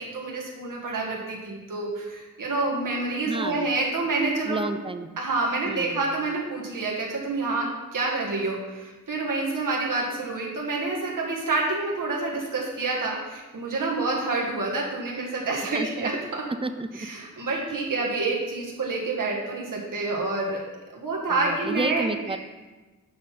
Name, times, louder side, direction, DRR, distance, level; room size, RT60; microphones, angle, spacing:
voice 1, 0.0-4.6 5.2-16.4 17.0-20.6 20.9-22.0, right 3 dB, 75° right, -2 dB, 1.6 m, -28 dB
voice 2, 3.2-3.7 4.5-5.1 5.7-6.1 15.6-16.1 16.6-17.1 17.5-17.7 21.3-22.4, right 3 dB, 15° right, 9 dB, 0.5 m, -31 dB
6.4 x 5.6 x 5.9 m, 1.2 s
wide cardioid pair, 100°, 33 cm